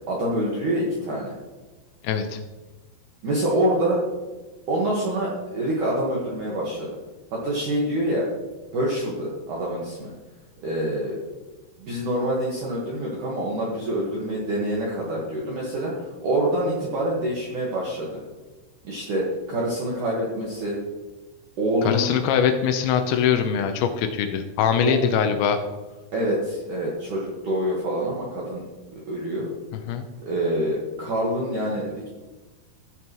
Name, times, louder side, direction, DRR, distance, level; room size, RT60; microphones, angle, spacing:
voice 1, 0.1-1.3 3.2-4.0 4.7-6.9 7.3-8.2 8.7-10.1 10.6-11.2 11.8-18.2 18.8-20.8 21.6-22.1 24.8-24.9 26.1-28.6 28.9-29.5 30.3-32.1, right 1 dB, 60° right, -5 dB, 2.2 m, -26 dB
voice 2, 2.0-2.4 21.8-25.6 29.9-30.1, left 8 dB, 80° left, 6 dB, 2.8 m, -22 dB
16.0 x 7.1 x 3.1 m, 1.2 s
omnidirectional pair, 5.6 m